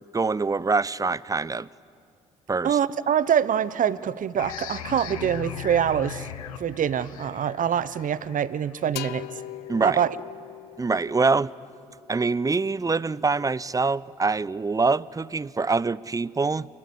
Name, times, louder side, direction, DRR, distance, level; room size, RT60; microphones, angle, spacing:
voice 1, 0.1-1.7 2.5-2.8 9.7-10.0 10.8-11.5 12.1-16.7, right 4 dB, 20° right, 0.6 m, -24 dB
voice 2, 2.6-6.3 6.6-9.3 9.8-10.1, right 9 dB, 50° right, 0.9 m, -25 dB
sound 1, 4.4-9.7, left 11 dB, 85° left, 1.1 m, -39 dB
sound 2, 9.0-12.6, left 15 dB, 70° left, 0.7 m, -41 dB
28.0 x 21.5 x 8.2 m
hypercardioid pair, 50°, 17 cm